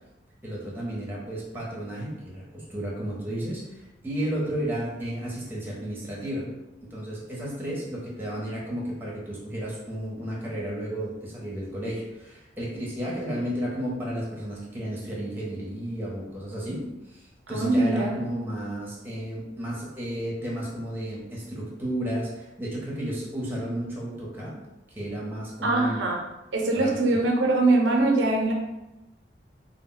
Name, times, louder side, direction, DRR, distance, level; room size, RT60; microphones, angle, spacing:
voice 1, 0.4-6.5 6.9-24.6 24.9-26.0 26.8-27.2, right 1 dB, 10° right, -5 dB, 0.7 m, -33 dB
voice 2, 17.5-18.1 25.6-26.2 26.5-28.5, right 2 dB, 85° right, -1 dB, 0.5 m, -22 dB
2.1 x 2.1 x 3.7 m, 0.97 s
head